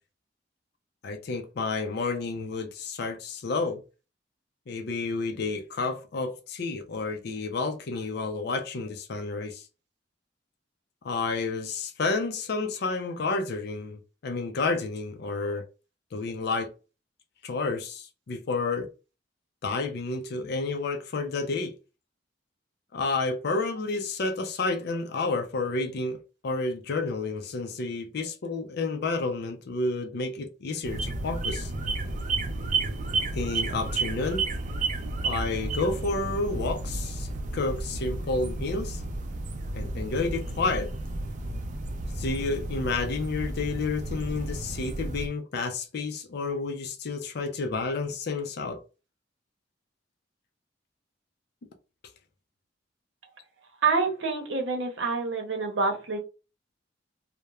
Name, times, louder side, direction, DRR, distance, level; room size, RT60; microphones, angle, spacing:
voice 1, 1.0-3.8 4.7-9.6 11.0-15.6 16.1-16.7 17.4-18.9 19.6-21.7 22.9-26.2 26.4-31.7 33.3-34.4 35.2-39.0 39.7-40.9 42.2-48.8, left 3 dB, 60° left, 0.4 m, -30 dB
sound 1, 30.8-45.3, right 2 dB, 40° right, 0.4 m, -32 dB
voice 2, 53.8-56.2, right 4 dB, 75° right, 0.7 m, -27 dB
2.9 x 2.1 x 2.3 m
head